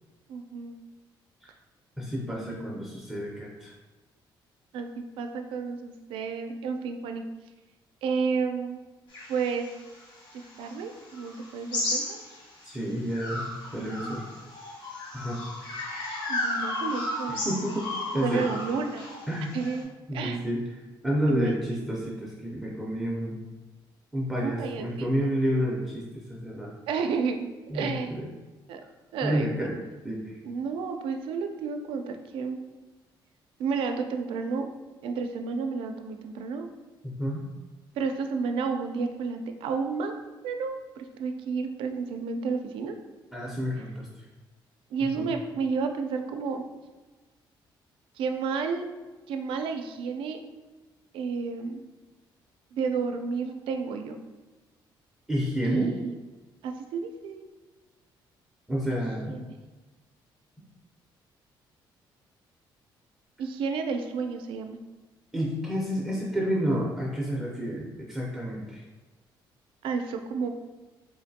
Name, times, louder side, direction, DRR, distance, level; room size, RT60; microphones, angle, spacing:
voice 1, 0.3-0.8 2.3-2.7 4.7-7.2 8.0-8.8 9.3-9.7 10.6-12.2 13.8-14.1 16.3-17.4 18.2-19.1 19.5-20.4 21.3-21.6 24.4-25.1 26.9-27.5 27.7-28.2 28.7-28.8 29.1-29.8 30.4-32.6 33.6-34.7 35.0-36.7 38.0-40.1 40.4-42.9 44.9-46.6 48.2-48.8 49.3-50.4 51.1-51.8 52.7-54.2 55.6-56.2 56.6-57.5 58.9-59.0 59.3-59.6 63.4-64.8 69.8-70.5, right 5 dB, 85° right, 6 dB, 0.4 m, -31 dB
voice 2, 2.0-3.7 12.6-14.3 15.1-15.4 17.3-17.8 18.1-18.4 19.3-19.6 20.1-20.6 21.0-23.4 24.1-26.7 27.7-28.3 29.2-29.7 30.0-30.4 37.0-37.4 43.3-44.1 45.0-45.3 55.3-55.9 58.7-59.3 65.3-68.8, equal, 5° right, -4 dB, 0.4 m, -30 dB
sound 1, 9.1-12.7 13.1-19.8, left 1 dB, 75° left, 1.0 m, -34 dB
3.8 x 2.5 x 2.6 m, 1.2 s
cardioid pair, 170°, 9 cm